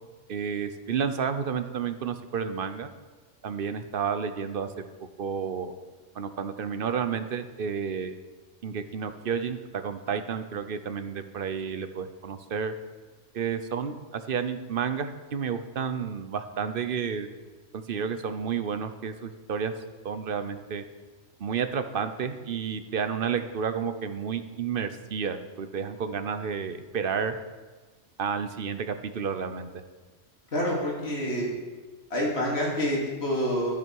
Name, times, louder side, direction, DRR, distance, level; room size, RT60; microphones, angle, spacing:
voice 1, 0.3-2.9 3.4-4.7 5.2-5.7 6.1-8.1 8.6-12.7 13.3-17.3 17.7-19.7 20.0-20.8 21.4-27.4 28.2-29.7, right 6 dB, 50° right, 10 dB, 0.9 m, -31 dB
voice 2, 30.5-31.5 32.1-33.7, equal, 60° left, -3 dB, 2.8 m, -27 dB
11.5 x 10.5 x 4.7 m, 1.3 s
omnidirectional pair, 1.3 m